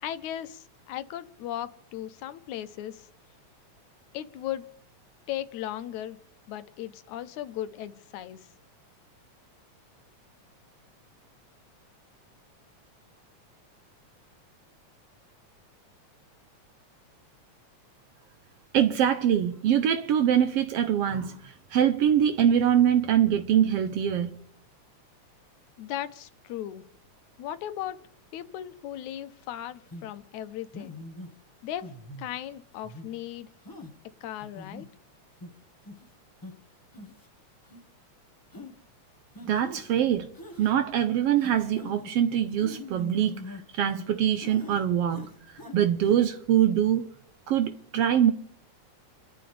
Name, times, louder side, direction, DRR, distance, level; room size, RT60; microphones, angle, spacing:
voice 1, 0.0-3.1 4.1-4.7 5.3-6.2 6.5-8.5 25.8-26.9 27.4-28.0 28.3-31.0 31.6-31.9 32.2-33.5 34.2-34.9, left 12 dB, 85° left, 2.2 m, -37 dB
voice 2, 18.7-24.4 39.5-40.3 40.6-45.3 45.7-47.1 47.5-48.3, right 9 dB, 70° right, 1.6 m, -24 dB
sound 1, 29.9-30.1 30.7-31.3 31.8-32.3 32.8-33.1 33.6-33.9 34.4-34.9 35.4-35.5 35.8-36.1 36.4-36.5 36.9-37.3 37.6-37.8 38.5-38.7 39.3-39.8 40.3-40.7 41.4-42.1 42.6-44.1 44.4-44.8 45.1-45.8 46.0-46.2, left 2 dB, 30° left, 0.3 m, -42 dB
29.5 x 12.0 x 3.4 m
omnidirectional pair, 3.3 m